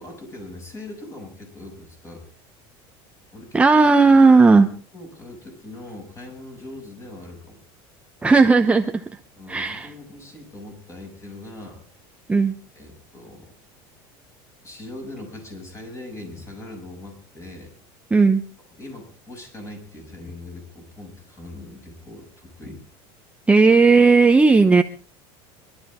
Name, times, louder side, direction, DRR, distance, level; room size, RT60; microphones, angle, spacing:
voice 1, 0.0-2.3 3.3-3.6 4.9-7.6 9.4-11.8 12.7-13.5 14.6-17.7 18.8-22.8, left 2 dB, 25° left, 3 dB, 7.1 m, -40 dB
voice 2, 3.5-4.7 8.2-9.1 9.5-9.9 12.3-12.5 18.1-18.4 23.5-24.8, right 4 dB, 10° right, 6 dB, 0.8 m, -14 dB
25.0 x 12.5 x 3.7 m, 0.41 s
supercardioid pair, 135°, 12 cm